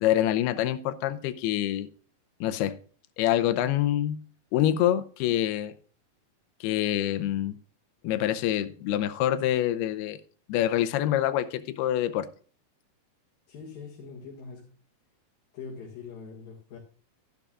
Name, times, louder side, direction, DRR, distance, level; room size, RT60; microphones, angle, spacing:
voice 1, 0.0-1.9 2.4-2.7 3.2-4.2 4.5-5.7 6.6-7.6 8.0-10.2 10.5-12.3, left 12 dB, 85° left, 11 dB, 2.7 m, -26 dB
voice 2, 13.5-14.8 15.5-16.8, left 5 dB, 70° left, -2 dB, 3.4 m, -43 dB
13.0 x 10.5 x 2.4 m, 0.44 s
omnidirectional pair, 4.4 m